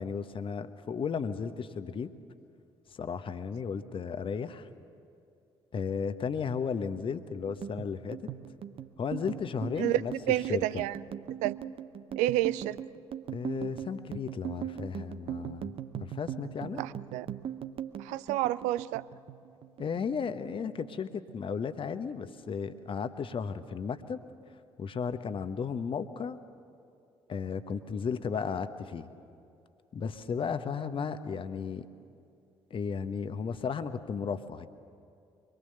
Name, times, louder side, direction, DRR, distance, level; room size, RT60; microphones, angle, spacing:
voice 1, 0.0-2.1 2.9-4.7 5.7-8.2 9.0-10.1 10.5-10.8 13.3-15.7 16.0-16.8 19.8-24.2 24.8-26.4 27.3-29.1 29.9-31.9 32.7-34.7, left 6 dB, 40° left, 11 dB, 1.1 m, -34 dB
sound 1, 7.5-20.0 20.3-21.3 21.6-22.0 22.3-23.0, right 9 dB, 45° right, 0.9 m, -39 dB
voice 2, 10.3-11.0 11.4-11.6 12.2-12.8 16.8-17.3 18.0-19.0, right 15 dB, 65° right, 17 dB, 0.5 m, -29 dB
24.5 x 22.0 x 6.8 m, 2.5 s
figure-of-eight pair, 45°, 14 cm